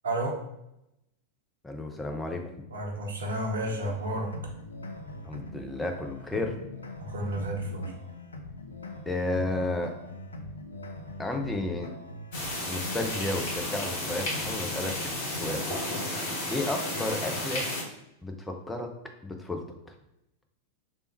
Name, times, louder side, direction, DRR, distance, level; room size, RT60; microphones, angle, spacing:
voice 1, 0.0-0.4 2.7-4.3 7.0-7.9, right 1 dB, 70° right, 1 dB, 0.8 m, -31 dB
voice 2, 1.6-2.4 5.2-6.6 9.1-9.9 11.2-11.9 12.7-15.0 15.3-15.7 16.5-17.7 18.2-18.9 19.2-19.9, left 2 dB, 10° left, 3 dB, 0.6 m, -32 dB
sound 1, 3.6-15.7, left 1 dB, 75° left, 0.5 m, -42 dB
sound 2, 12.3-17.8, left 1 dB, 50° left, 1.4 m, -33 dB
3.4 x 2.7 x 4.3 m, 0.84 s
figure-of-eight pair, 90°, 0 cm